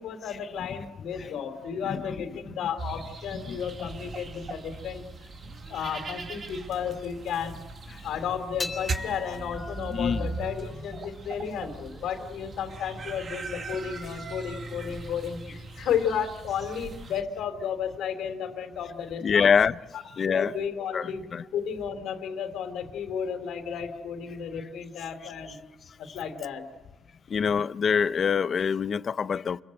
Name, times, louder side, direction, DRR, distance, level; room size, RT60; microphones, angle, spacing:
voice 1, 0.0-5.1 5.7-7.6 8.0-19.5 19.9-21.2 21.5-25.6 26.1-26.6, left 7 dB, 80° left, 3.5 m, -33 dB
sound 1, 2.8-17.2, right 3 dB, 45° right, 2.8 m, -39 dB
voice 2, 3.5-3.9 10.0-10.3 19.2-19.7 20.2-20.5 20.9-21.4 27.3-29.6, left 6 dB, 50° left, 0.8 m, -25 dB
sound 2, 8.6-15.1, left 3 dB, 25° left, 3.9 m, -42 dB
28.5 x 22.5 x 7.9 m
cardioid pair, 90°, 0 cm